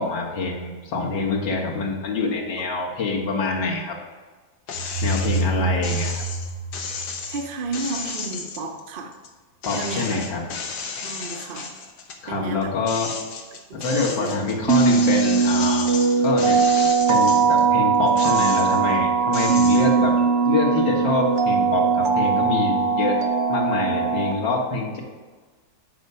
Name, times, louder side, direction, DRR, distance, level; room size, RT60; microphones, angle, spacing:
voice 1, 0.0-4.0 5.0-6.3 9.6-10.5 12.2-13.1 13.7-15.9 16.2-20.2 20.4-23.2 23.5-25.0, left 3 dB, 85° left, -2 dB, 2.2 m, -25 dB
sound 1, 4.7-5.4 5.8-9.3 9.6-12.2 12.6-17.6 18.1-18.9 19.3-19.9, left 5 dB, 65° left, 1.5 m, -33 dB
sound 2, 4.7-7.6, right 2 dB, 5° left, 1.5 m, -27 dB
voice 2, 7.3-9.2 9.7-10.2 11.0-11.7 12.3-12.7 13.9-14.4, right 3 dB, 70° right, 5 dB, 0.5 m, -32 dB
sound 3, 14.7-24.3, right 5 dB, 55° right, 0.9 m, -20 dB
9.1 x 4.9 x 5.5 m, 1.4 s
omnidirectional pair, 1.9 m